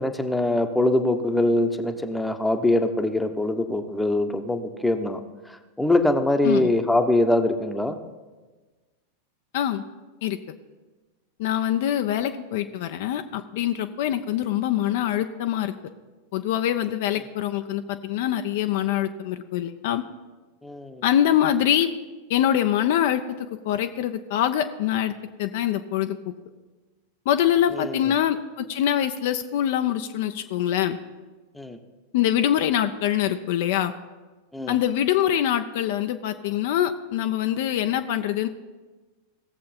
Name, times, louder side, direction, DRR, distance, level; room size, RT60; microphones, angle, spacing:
voice 1, 0.0-5.2 5.5-8.0 20.6-21.0 27.7-28.0 31.6-31.8 34.5-34.8, left 1 dB, 5° left, 7 dB, 0.9 m, -23 dB
voice 2, 11.4-15.7 16.3-20.0 21.0-21.9 22.3-25.1 25.4-26.3 27.3-31.0 32.1-33.9 34.7-38.5, left 11 dB, 50° left, 8 dB, 0.5 m, -24 dB
17.5 x 7.4 x 4.3 m, 1.3 s
figure-of-eight pair, 90°, 0 cm